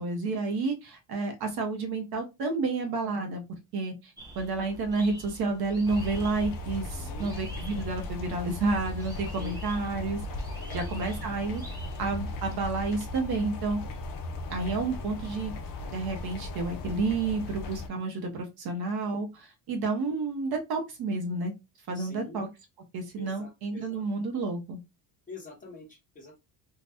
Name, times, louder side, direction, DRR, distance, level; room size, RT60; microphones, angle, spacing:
voice 1, 0.0-3.4 3.7-10.2 10.7-11.6 12.0-13.8 14.5-15.5 15.9-21.5 21.9-22.5 22.9-24.8, right 3 dB, 50° right, 4 dB, 0.7 m, -30 dB
sound 1, 4.2-12.6, right 1 dB, 10° right, 0.5 m, -46 dB
sound 2, 5.9-17.9, left 2 dB, 50° left, 0.5 m, -37 dB
voice 2, 6.9-7.3 9.4-9.6 10.6-10.8 21.9-22.4 23.2-24.0 25.3-26.4, left 3 dB, 15° left, -3 dB, 1.1 m, -46 dB
2.6 x 2.1 x 3.3 m, 0.23 s
cardioid pair, 170°, 48 cm